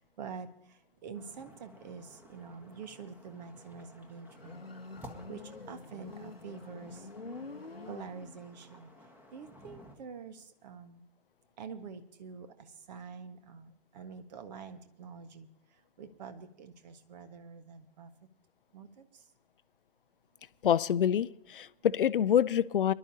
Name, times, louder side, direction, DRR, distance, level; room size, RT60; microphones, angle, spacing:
voice 1, 0.2-0.5 1.0-4.6 5.3-5.4 5.7-7.0 7.9-8.9 9.3-11.0 11.6-12.5 12.9-13.7 13.9-15.5 16.0-18.1 18.7-19.0, right 6 dB, 45° right, 1.5 m, -46 dB
sound 1, 1.1-10.0, equal, 5° right, 1.4 m, -55 dB
Motorcycle, 4.3-8.7, left 3 dB, 90° left, 1.0 m, -46 dB
voice 2, 20.6-22.9, left 9 dB, 65° left, 0.6 m, -26 dB
24.0 x 12.0 x 2.8 m
figure-of-eight pair, 120°, 29 cm